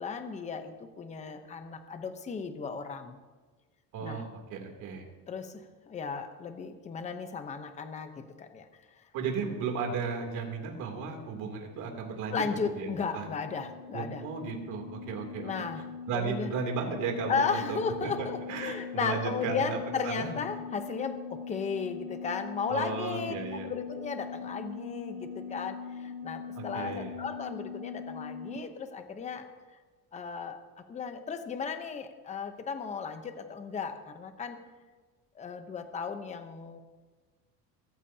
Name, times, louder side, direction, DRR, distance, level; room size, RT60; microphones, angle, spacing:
voice 1, 0.0-3.1 4.0-4.2 5.3-5.6 5.9-8.1 8.4-8.7 12.3-14.2 15.4-15.8 16.1-16.5 17.3-23.3 23.6-29.5 30.1-30.6 30.9-34.6 35.4-36.8, left 5 dB, 20° left, 7 dB, 0.8 m, -35 dB
voice 2, 3.9-5.0 9.1-12.4 12.8-13.3 13.9-15.5 16.1-19.8 20.0-20.3 22.7-23.7 26.6-27.1, right 5 dB, 55° right, 2 dB, 3.0 m, -35 dB
sound 1, 12.4-28.6, left 6 dB, 85° right, 1.1 m, -42 dB
23.5 x 14.0 x 2.8 m, 1.4 s
cardioid pair, 175°, 36 cm